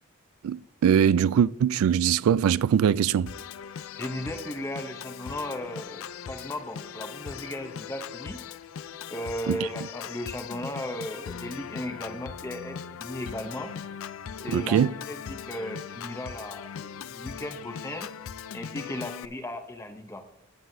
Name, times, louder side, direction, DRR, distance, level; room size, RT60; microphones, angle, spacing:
voice 1, 0.4-3.3 9.5-9.6 14.5-14.9, right 8 dB, 85° right, 0.3 m, -22 dB
Organ, 3.3-19.3, left 7 dB, 75° left, 0.4 m, -40 dB
voice 2, 4.0-8.4 9.1-13.7 14.4-18.1 18.5-20.2, left 1 dB, 15° left, 0.7 m, -36 dB
14.5 x 9.4 x 2.6 m
head